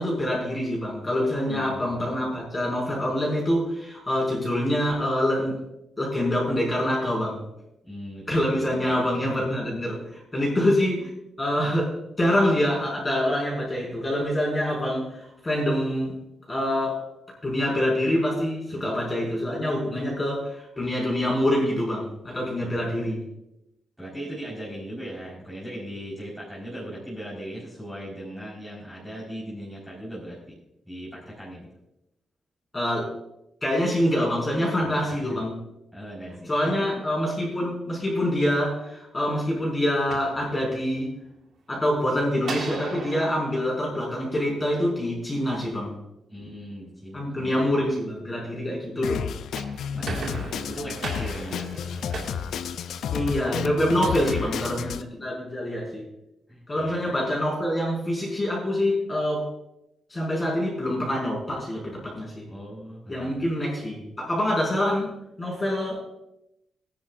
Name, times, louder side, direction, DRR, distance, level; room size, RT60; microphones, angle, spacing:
voice 1, 0.0-5.6 6.0-7.5 8.3-11.1 11.4-16.2 16.5-17.0 17.4-23.2 32.7-33.1 33.6-35.5 36.5-41.1 41.7-45.9 47.1-49.3 53.1-56.1 56.7-59.5 60.1-62.5 63.1-65.1 65.4-66.0, left 1 dB, 20° left, -4 dB, 5.0 m, -25 dB
voice 2, 1.5-2.0 7.8-9.1 18.7-18.9 22.6-22.8 24.0-30.5 30.8-31.7 34.8-35.4 35.9-36.9 46.3-47.6 49.9-52.3 54.0-55.0 56.5-57.0 62.5-63.5, equal, 5° right, -7 dB, 4.4 m, -38 dB
sound 1, 39.9-41.1 42.4-44.9 49.3-53.4, right 4 dB, 65° right, 1.9 m, -38 dB
Drum kit, 49.0-55.0, left 8 dB, 85° left, 0.5 m, -32 dB
19.5 x 10.0 x 2.5 m, 0.86 s
wide cardioid pair, 155°, 0 cm